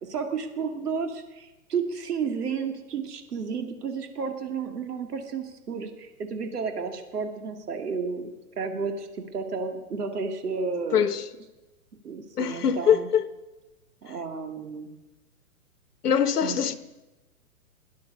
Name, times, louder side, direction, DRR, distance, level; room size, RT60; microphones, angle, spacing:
voice 1, 0.0-8.3 8.6-11.0 12.0-13.1 14.0-14.9 16.4-16.8, right 5 dB, 85° right, 2.6 m, -32 dB
voice 2, 10.9-11.2 12.4-13.3 16.0-16.8, left 8 dB, 85° left, 1.3 m, -23 dB
17.5 x 10.5 x 6.8 m
hypercardioid pair, 175°, 45 cm